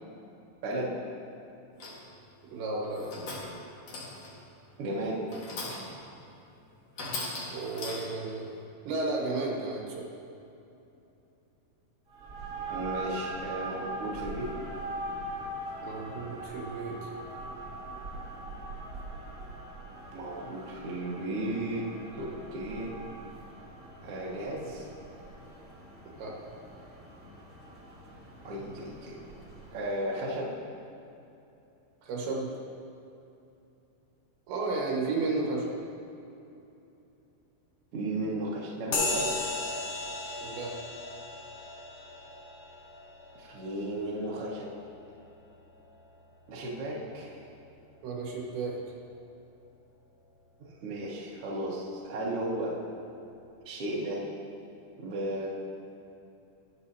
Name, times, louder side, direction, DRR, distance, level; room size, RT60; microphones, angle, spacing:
voice 1, 0.6-0.9 4.8-5.2 12.7-14.5 20.1-21.9 22.1-22.9 24.0-24.9 28.4-29.2 29.7-30.5 37.9-39.3 43.4-44.7 46.5-47.4 50.6-52.7 53.6-54.2 55.0-55.5, right 1 dB, 55° right, -5 dB, 1.6 m, -34 dB
sound 1, 1.8-2.1 2.8-3.6 3.9-4.4 5.3-6.0 6.4-6.5 6.9-8.3, left 2 dB, 55° left, 1.8 m, -39 dB
voice 2, 2.5-3.2 7.5-8.5 8.9-10.1 15.8-17.1 26.2-26.4 32.0-32.5 34.5-35.8 40.4-40.8 48.0-48.8, right 3 dB, 80° right, -2 dB, 3.8 m, -33 dB
sound 2, 12.1-30.0, right 2 dB, 30° right, 1.3 m, -42 dB
sound 3, 38.9-46.8, left 2 dB, 75° left, 1.6 m, -37 dB
21.0 x 7.0 x 2.8 m, 2.8 s
omnidirectional pair, 5.1 m